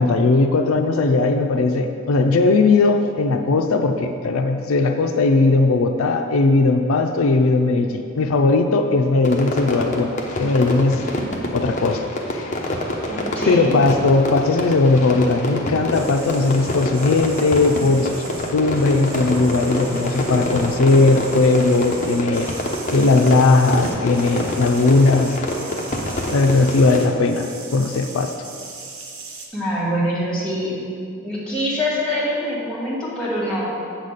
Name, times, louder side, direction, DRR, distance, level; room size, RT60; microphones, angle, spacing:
voice 1, 0.0-11.0 11.5-12.0 12.3-12.5 13.5-18.1 18.5-22.5 22.9-25.4 26.3-28.3, left 3 dB, 80° left, 5 dB, 0.4 m, -18 dB
Fireworks, 9.2-27.1, left 1 dB, 40° left, 0.8 m, -27 dB
voice 2, 13.1-13.7 29.5-30.8 31.2-33.6, equal, 5° left, -9 dB, 2.0 m, -24 dB
sound 1, 15.9-29.5, right 3 dB, 75° right, 1.0 m, -38 dB
7.9 x 4.1 x 6.5 m, 2.4 s
head